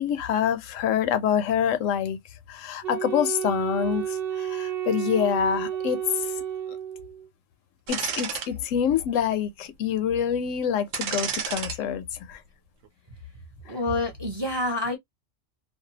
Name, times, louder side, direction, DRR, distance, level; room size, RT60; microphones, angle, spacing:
voice 1, 0.0-2.2 2.5-6.3 7.9-12.4, left 8 dB, 85° left, 0.9 m, -26 dB
Wind instrument woodwind instrument, 2.8-7.3, right 9 dB, 55° right, 0.8 m, -31 dB
sound 1, 7.9-8.5 9.0-9.1 10.9-11.8 12.1-12.3, right 7 dB, 80° right, 1.0 m, -30 dB
voice 2, 13.6-15.0, left 2 dB, 25° right, 0.6 m, -27 dB
2.6 x 2.2 x 2.7 m
omnidirectional pair, 1.3 m